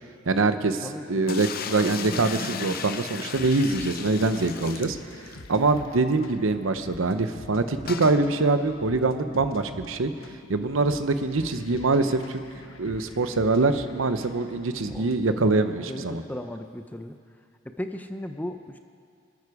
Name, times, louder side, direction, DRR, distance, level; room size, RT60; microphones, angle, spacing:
voice 1, 0.3-5.0 5.5-10.1 10.5-12.4 12.8-16.2, right 3 dB, 80° right, 10 dB, 0.8 m, -24 dB
voice 2, 0.8-1.2 14.9-15.1 15.8-17.2 17.8-18.8, left 1 dB, 10° left, 7 dB, 0.5 m, -36 dB
sound 1, 1.3-5.5 5.8-5.9 6.1-6.2 7.9-8.2, left 6 dB, 45° left, 0.6 m, -35 dB
sound 2, 3.4-15.4, left 2 dB, 85° left, 0.9 m, -46 dB
25.5 x 9.3 x 4.9 m, 2.3 s
head